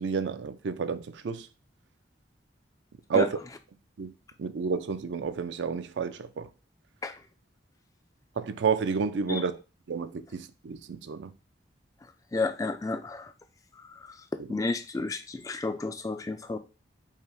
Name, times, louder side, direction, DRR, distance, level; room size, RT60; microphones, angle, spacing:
voice 1, 0.0-1.5 3.1-3.4 4.0-4.1 4.4-6.5 8.4-9.5 9.9-11.3 14.4-14.5, right 5 dB, 75° right, 0.4 m, -30 dB
voice 2, 12.3-13.3 13.8-14.2 14.5-16.6, left 3 dB, 20° left, 0.3 m, -32 dB
5.6 x 2.1 x 4.6 m
head